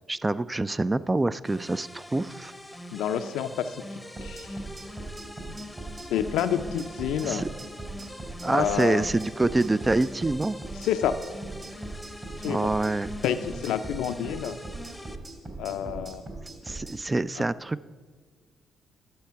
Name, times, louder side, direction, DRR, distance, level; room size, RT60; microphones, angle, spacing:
voice 1, 0.1-2.5 7.2-7.5 8.4-10.6 12.4-13.1 16.7-17.9, right 2 dB, 20° right, 16 dB, 0.3 m, -26 dB
sound 1, 1.4-15.2, left 1 dB, 5° left, 0.8 m, -43 dB
voice 2, 2.9-3.8 4.2-4.5 6.1-7.4 8.5-9.1 10.8-11.2 12.4-12.7 13.2-14.6 15.6-16.2 17.4-17.5, left 9 dB, 90° left, 10 dB, 0.5 m, -28 dB
sound 2, 4.2-17.0, right 3 dB, 40° right, 3.1 m, -40 dB
10.5 x 6.6 x 5.7 m, 1.5 s
cardioid pair, 75°, 0 cm